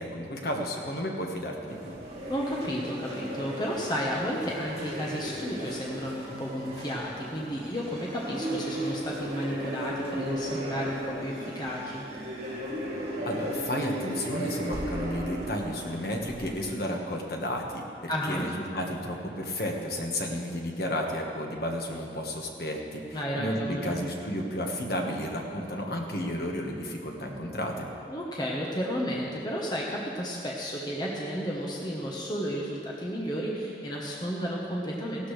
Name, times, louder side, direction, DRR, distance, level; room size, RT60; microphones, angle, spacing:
voice 1, 0.0-1.9 13.3-27.9, left 1 dB, 60° left, 0 dB, 1.5 m, -32 dB
sound 1, 1.7-16.6, right 1 dB, 35° right, 2.5 m, -36 dB
voice 2, 2.3-12.1 18.1-18.5 23.1-24.0 28.1-35.3, equal, 25° left, -3 dB, 1.1 m, -32 dB
16.0 x 12.5 x 3.3 m, 2.6 s
head